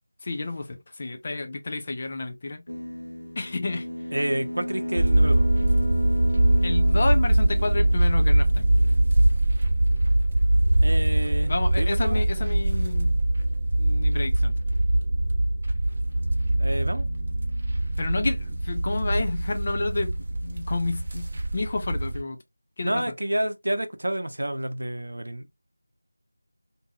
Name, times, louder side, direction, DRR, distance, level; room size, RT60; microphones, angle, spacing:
voice 1, 0.2-2.6 3.4-3.9 6.6-8.7 11.5-13.2 13.8-14.5 18.0-22.4 22.8-23.1, left 3 dB, 30° left, 0.4 m, -30 dB
sound 1, 2.7-9.2, equal, 85° left, 0.8 m, -34 dB
voice 2, 4.1-5.5 10.8-12.3 16.6-17.1 22.8-25.5, right 1 dB, 75° right, 0.6 m, -29 dB
sound 2, 4.9-22.2, right 1 dB, 35° right, 0.8 m, -22 dB
2.7 x 2.6 x 2.2 m
figure-of-eight pair, 170°, 0 cm